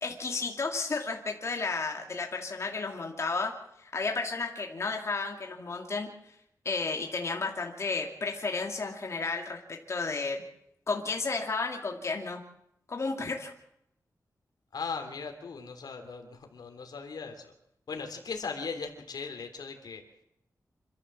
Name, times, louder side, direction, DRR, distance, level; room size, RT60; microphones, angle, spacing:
voice 1, 0.0-3.5 3.9-6.1 6.6-10.4 10.9-12.4 12.9-13.5, left 4 dB, 45° left, 2 dB, 2.5 m, -32 dB
voice 2, 14.7-17.5 17.9-20.0, left 5 dB, 85° left, 4 dB, 3.4 m, -38 dB
26.5 x 13.5 x 7.6 m, 0.76 s
wide cardioid pair, 170°, 7 cm